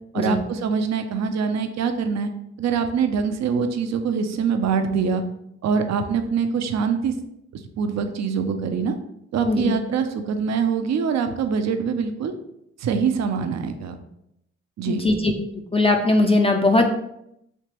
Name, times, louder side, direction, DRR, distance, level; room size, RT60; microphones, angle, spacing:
voice 1, 0.1-2.3 2.6-5.2 5.6-7.1 7.8-8.9 9.3-12.3 12.8-14.0 14.8-15.1, right 6 dB, 60° right, 7 dB, 0.5 m, -24 dB
voice 2, 9.4-9.8 14.9-15.3 15.7-16.8, left 2 dB, 20° left, 3 dB, 0.4 m, -19 dB
3.3 x 2.9 x 2.9 m, 0.79 s
supercardioid pair, 45°, 30 cm